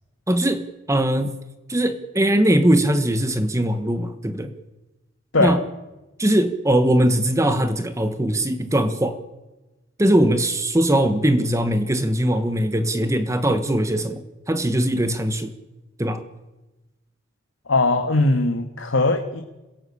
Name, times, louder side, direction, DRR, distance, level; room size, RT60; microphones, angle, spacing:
voice 1, 0.3-1.3 1.7-4.5 5.4-5.6 6.2-9.2 10.0-15.5 16.0-16.2, right 1 dB, 15° right, 9 dB, 1.4 m, -20 dB
voice 2, 17.7-19.4, left 2 dB, 80° left, 6 dB, 1.8 m, -20 dB
26.5 x 17.0 x 8.6 m, 1.1 s
head